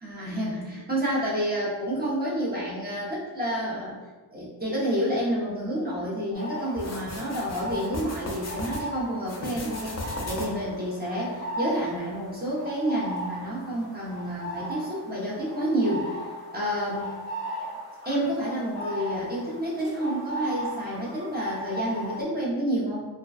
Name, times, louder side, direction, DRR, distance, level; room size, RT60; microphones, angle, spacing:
voice 1, 0.0-4.0 4.3-16.1 16.5-17.0 18.0-23.1, equal, 20° right, -7 dB, 0.7 m, -29 dB
sound 1, 6.3-22.2, right 1 dB, 60° right, 1.4 m, -37 dB
sound 2, 6.8-8.8 9.2-10.7, left 1 dB, 35° left, 0.5 m, -36 dB
2.5 x 2.2 x 2.3 m, 1.3 s
wide cardioid pair, 80°, 46 cm